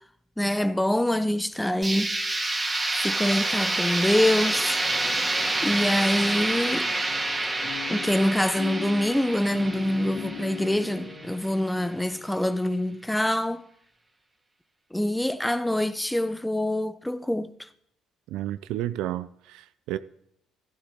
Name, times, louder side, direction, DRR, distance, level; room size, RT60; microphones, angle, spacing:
voice 1, 0.4-2.1 3.0-4.8 5.6-6.9 7.9-13.6 14.9-17.7, left 1 dB, 5° left, 0.8 m, -25 dB
sound 1, 1.8-11.6, right 2 dB, 20° right, 2.4 m, -28 dB
sound 2, 5.1-12.3, left 8 dB, 65° left, 3.1 m, -41 dB
voice 2, 18.3-20.0, right 13 dB, 70° right, 0.5 m, -31 dB
14.5 x 12.0 x 3.7 m
hypercardioid pair, 55°, 0 cm